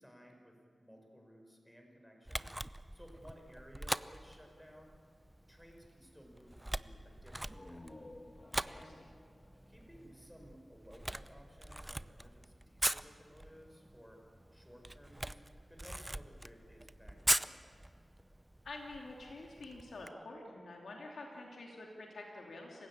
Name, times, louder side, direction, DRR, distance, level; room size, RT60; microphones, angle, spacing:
voice 1, 0.0-2.6 2.9-4.9 5.5-7.9 8.6-9.0 9.7-14.2 14.5-15.4 15.7-17.7, equal, 5° left, 2 dB, 5.5 m, -58 dB
Camera, 2.3-20.1, right 1 dB, 15° right, 0.6 m, -42 dB
sound 1, 7.4-11.0, left 1 dB, 30° left, 1.5 m, -55 dB
voice 2, 8.5-8.9 18.6-22.9, left 2 dB, 90° left, -1 dB, 2.7 m, -48 dB
27.5 x 16.0 x 8.7 m, 2.4 s
wide cardioid pair, 65°, 0 cm